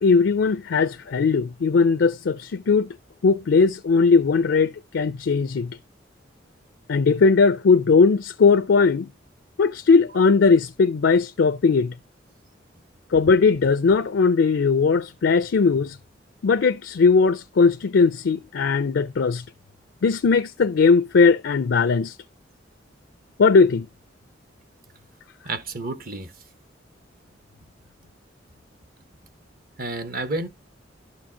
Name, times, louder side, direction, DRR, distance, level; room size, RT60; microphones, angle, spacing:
voice 1, 0.0-2.9 3.2-5.8 6.9-9.1 9.6-11.9 13.1-16.0 16.4-19.4 20.0-22.2 23.4-23.9, left 4 dB, 75° left, 0.4 m, -19 dB
voice 2, 25.4-26.3 29.8-30.5, right 2 dB, 50° right, 1.1 m, -30 dB
12.0 x 4.4 x 2.8 m
head